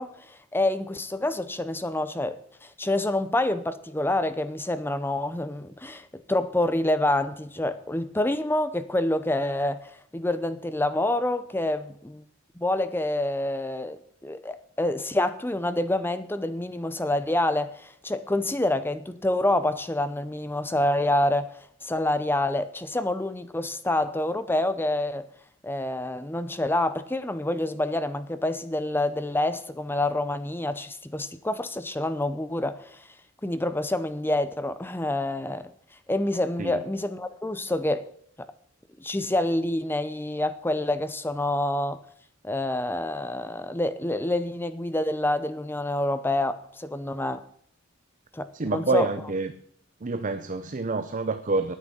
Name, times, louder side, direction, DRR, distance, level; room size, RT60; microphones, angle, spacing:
voice 1, 0.0-12.2 12.6-25.3 25.6-33.0 33.4-35.7 36.1-38.0 39.0-42.0 42.4-47.4 48.3-49.1, left 1 dB, 10° left, 0.7 m, -27 dB
voice 2, 48.5-49.5 50.0-51.7, right 3 dB, 40° right, 0.7 m, -27 dB
9.8 x 8.7 x 8.7 m
head